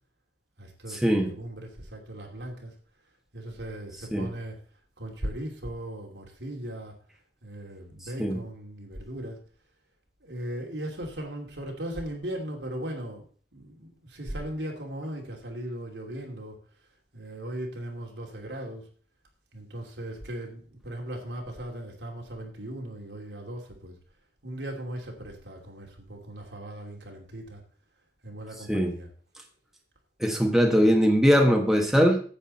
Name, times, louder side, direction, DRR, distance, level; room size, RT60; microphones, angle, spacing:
voice 1, 0.6-2.7 3.3-4.6 5.0-6.9 7.4-9.4 10.2-16.6 17.1-18.9 19.5-24.0 24.4-27.6 28.2-29.1, right 1 dB, 85° right, 1 dB, 2.7 m, -38 dB
voice 2, 30.2-32.2, equal, ahead, 2 dB, 1.3 m, -21 dB
10.0 x 8.2 x 4.2 m, 0.42 s
head